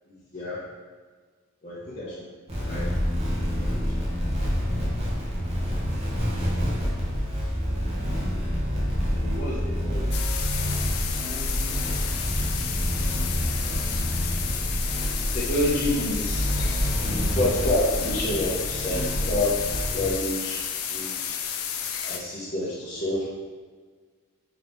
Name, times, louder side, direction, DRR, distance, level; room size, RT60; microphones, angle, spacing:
voice 1, 0.1-0.6 1.6-2.3 2.7-2.9 3.6-3.8 9.1-10.1 11.2-11.8 15.3-16.5 17.0-19.6 19.9-21.4 22.0-23.3, left 1 dB, 35° left, -9 dB, 0.7 m, -29 dB
sound 1, 2.5-20.1, equal, 30° right, 0.8 m, -27 dB
sound 2, 10.1-22.2, left 8 dB, 65° left, 0.4 m, -32 dB
3.8 x 3.5 x 3.0 m, 1.5 s
head